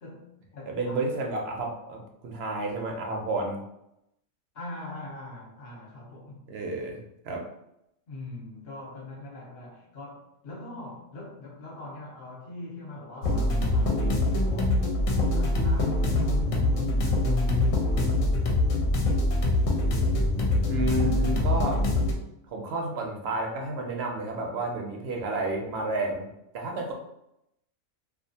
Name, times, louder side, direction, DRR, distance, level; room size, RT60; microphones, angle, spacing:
voice 1, 0.0-1.2 4.5-6.5 8.1-14.8 15.2-18.4, left 1 dB, 55° left, -3 dB, 0.9 m, -43 dB
voice 2, 0.7-3.6 6.5-7.4 20.7-21.8 22.5-26.3 26.5-26.9, right 2 dB, 65° right, 1 dB, 0.6 m, -31 dB
sound 1, 13.2-22.1, left 2 dB, 75° left, 0.9 m, -24 dB
2.4 x 2.3 x 2.6 m, 0.82 s
omnidirectional pair, 1.4 m